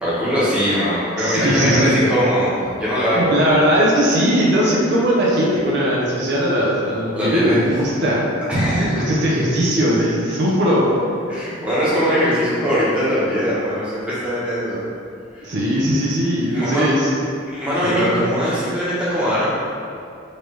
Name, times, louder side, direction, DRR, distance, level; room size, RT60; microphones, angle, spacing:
voice 1, 0.0-3.3 7.2-7.6 8.5-8.9 11.3-14.8 15.3-15.5 16.5-16.8 17.5-19.4, equal, 5° right, -11 dB, 1.1 m, -21 dB
voice 2, 1.2-1.9 3.1-8.2 8.8-10.8 15.4-17.1 17.9-18.2, equal, 60° right, -5 dB, 0.6 m, -19 dB
4.0 x 3.1 x 3.2 m, 2.4 s
head